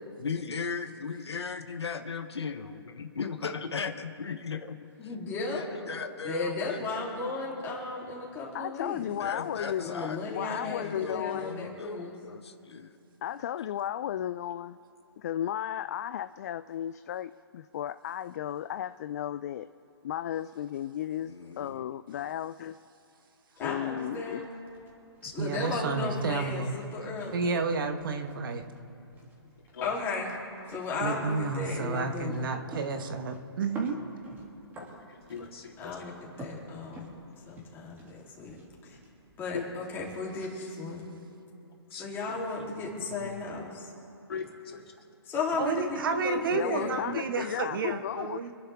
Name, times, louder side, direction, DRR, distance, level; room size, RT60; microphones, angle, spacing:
voice 1, 0.2-4.9 5.5-6.9 9.1-10.2 10.5-12.9 21.2-21.8 43.1-43.3, left 5 dB, 80° left, 8 dB, 1.0 m, -37 dB
voice 2, 5.0-5.7 6.2-9.0 9.8-12.1 23.6-24.5 25.3-27.4 29.8-30.3 30.6-32.5 35.8-37.1 37.5-38.5 38.8-39.0 39.4-41.1 42.0-43.9 45.2-47.0, left 3 dB, 15° left, -4 dB, 3.2 m, -35 dB
voice 3, 8.5-9.9 10.3-11.5 13.2-14.8 15.2-19.7 20.0-22.8 23.6-24.4 46.5-48.4, left 11 dB, 40° left, 12 dB, 0.3 m, -34 dB
sound 1, 23.6-40.6, right 2 dB, 15° right, 2.6 m, -51 dB
voice 4, 25.4-26.7 27.3-28.6 31.0-34.0 45.6-48.5, right 4 dB, 55° right, 7 dB, 1.4 m, -31 dB
voice 5, 29.7-30.1 34.8-36.1 39.5-39.6 41.9-42.2 44.3-44.8, left 6 dB, 65° left, -1 dB, 3.3 m, -40 dB
26.5 x 11.0 x 3.5 m, 2.9 s
hypercardioid pair, 145°, 14 cm